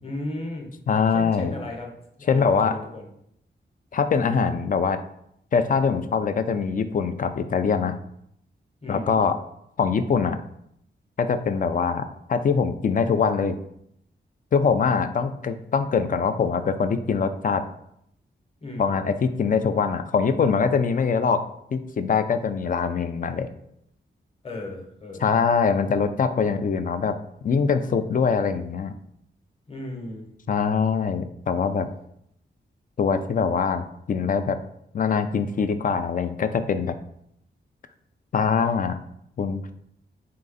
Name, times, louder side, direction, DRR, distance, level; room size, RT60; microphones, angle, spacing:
voice 1, 0.0-0.7 1.1-3.1 8.8-9.1 18.6-18.9 24.4-25.3 29.7-30.3, left 1 dB, 30° left, 1 dB, 1.0 m, -35 dB
voice 2, 0.9-1.6 2.3-2.8 3.9-5.0 5.5-8.0 8.9-9.4 9.8-10.4 11.2-13.6 14.5-17.6 18.8-21.4 21.7-23.5 25.2-27.2 27.4-28.9 30.5-31.9 33.0-34.6 34.9-36.9 38.3-39.0 39.4-39.7, left 5 dB, 45° left, 10 dB, 0.4 m, -23 dB
3.7 x 3.3 x 3.9 m, 0.73 s
wide cardioid pair, 90°, 19 cm